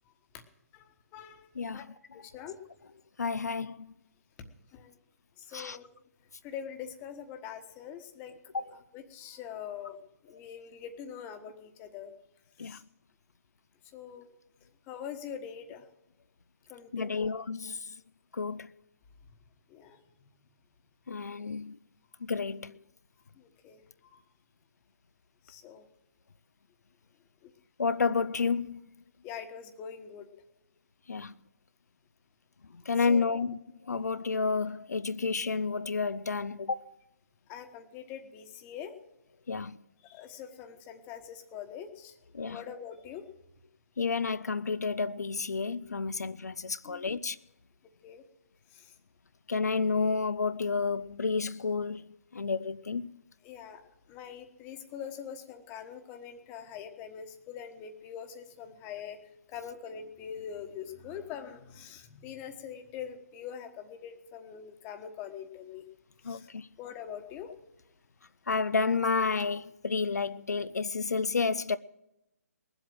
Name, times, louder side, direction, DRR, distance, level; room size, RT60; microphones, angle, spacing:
voice 1, 0.7-1.8 2.1-2.6 4.7-4.9 5.5-5.9 6.4-8.3 8.9-12.1 12.6-12.8 13.9-14.3 14.9-15.8 16.7-17.3 19.7-20.0 23.4-23.8 24.1-24.2 25.4-25.8 27.4-27.5 29.2-30.3 33.1-33.4 37.5-38.9 40.0-42.2 42.5-43.2 46.8-47.0 48.0-48.2 48.7-48.9 53.4-53.8 54.1-59.2 59.5-65.8 66.2-66.5 66.8-67.5, left 8 dB, 20° left, 1.2 m, -43 dB
voice 2, 1.6-1.9 3.2-3.9 5.5-5.8 8.5-8.7 12.6-12.8 16.9-17.9 18.3-18.7 21.1-21.8 22.2-22.7 27.8-28.8 31.1-31.3 32.9-33.6 33.9-36.9 39.5-39.8 42.3-42.6 44.0-47.4 49.5-53.1 66.2-66.7 68.5-71.8, left 4 dB, 80° left, 0.5 m, -30 dB
19.5 x 7.9 x 7.7 m
figure-of-eight pair, 145°, 9 cm